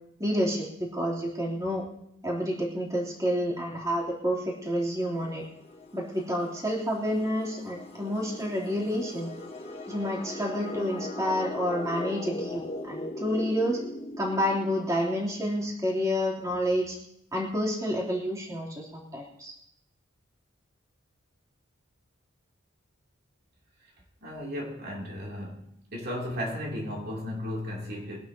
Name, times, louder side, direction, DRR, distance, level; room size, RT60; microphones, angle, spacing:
voice 1, 0.2-1.8 2.2-5.4 5.9-9.3 9.9-13.8 14.2-17.0 17.3-19.5, equal, 15° right, 3.1 m, -29 dB
sound 1, 4.8-15.4, left 2 dB, 30° left, 2.0 m, -40 dB
voice 2, 24.2-25.6 25.9-28.2, left 1 dB, 50° right, 2.9 m, -35 dB
24.0 x 11.5 x 2.8 m
head